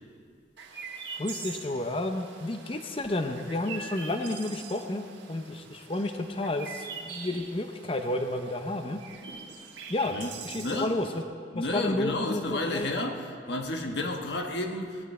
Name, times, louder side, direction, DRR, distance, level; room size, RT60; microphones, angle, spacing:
Chirp tweet, 0.6-11.2, right 5 dB, 75° right, 1.4 m, -44 dB
voice 1, 1.2-9.0 9.9-11.3 11.5-12.9, left 1 dB, 30° left, 6 dB, 0.6 m, -31 dB
voice 2, 10.1-10.9 11.5-15.1, left 2 dB, 65° left, 3 dB, 1.2 m, -32 dB
18.0 x 12.0 x 4.4 m, 2.2 s
head